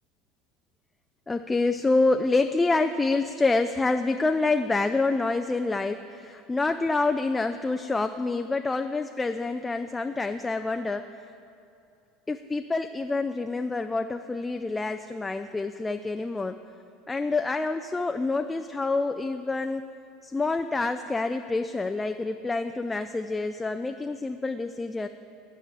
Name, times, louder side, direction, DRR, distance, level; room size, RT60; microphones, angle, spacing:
voice 1, 1.3-11.0 12.3-16.6 17.1-19.9 20.2-25.1, left 3 dB, 15° left, 7 dB, 0.4 m, -27 dB
11.5 x 4.9 x 8.3 m, 2.5 s
hypercardioid pair, 80°, 0 cm